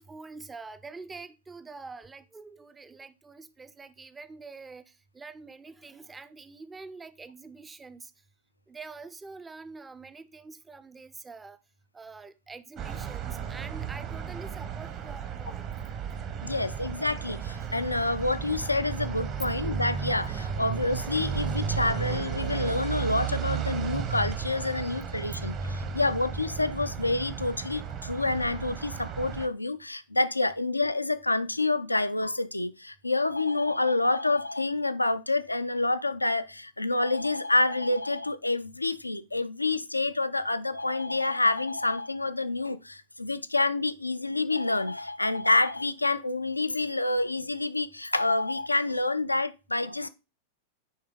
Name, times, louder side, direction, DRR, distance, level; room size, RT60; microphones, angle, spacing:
voice 1, 0.0-8.1 8.7-11.6 11.9-15.7, right 4 dB, 15° right, 0.5 m, -45 dB
sound 1, 12.8-29.5, right 7 dB, 35° right, 0.9 m, -34 dB
voice 2, 16.4-50.1, left 2 dB, 85° left, 0.4 m, -28 dB
sound 2, 21.3-25.0 25.3-25.4, right 9 dB, 75° right, 0.7 m, -41 dB
9.4 x 3.4 x 3.9 m
figure-of-eight pair, 90°, 0 cm